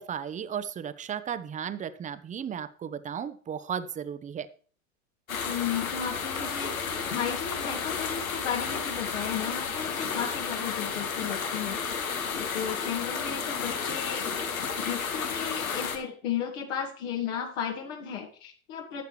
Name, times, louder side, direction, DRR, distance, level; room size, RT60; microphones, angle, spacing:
voice 1, 0.1-4.5, right 8 dB, 20° right, 14 dB, 0.7 m, -35 dB
sound 1, 5.3-16.0, left 6 dB, 85° left, 1.7 m, -32 dB
voice 2, 5.3-12.0 12.5-14.3 14.8-19.0, left 8 dB, 65° left, 1 dB, 1.9 m, -34 dB
12.0 x 7.9 x 3.2 m, 0.43 s
hypercardioid pair, 95°, 40 cm